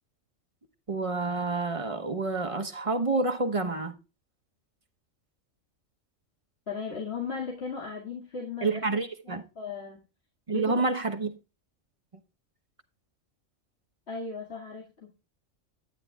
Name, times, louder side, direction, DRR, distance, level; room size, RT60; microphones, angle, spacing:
voice 1, 0.9-4.0 8.6-9.4 10.5-11.3, right 3 dB, 30° right, 1.0 m, -28 dB
voice 2, 6.7-10.0 10.5-10.9 14.1-15.1, left 5 dB, 50° left, 2.3 m, -37 dB
12.0 x 9.7 x 2.3 m
omnidirectional pair, 1.4 m